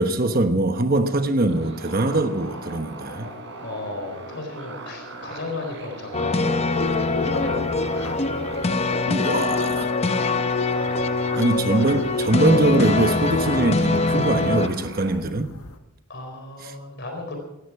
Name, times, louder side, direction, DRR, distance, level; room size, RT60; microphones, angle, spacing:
voice 1, 0.0-3.3 9.1-9.9 11.4-15.5 16.6-16.7, right 2 dB, 40° right, 1.1 m, -22 dB
sound 1, 1.5-15.1, right 2 dB, 55° right, 3.9 m, -39 dB
voice 2, 3.6-8.5 10.8-11.5 11.8-12.1 16.1-17.4, left 2 dB, 50° left, 4.1 m, -35 dB
sound 2, 6.1-14.7, left 3 dB, 30° left, 0.6 m, -23 dB
sound 3, 6.7-15.8, left 1 dB, 85° left, 1.5 m, -36 dB
18.0 x 15.0 x 4.8 m
head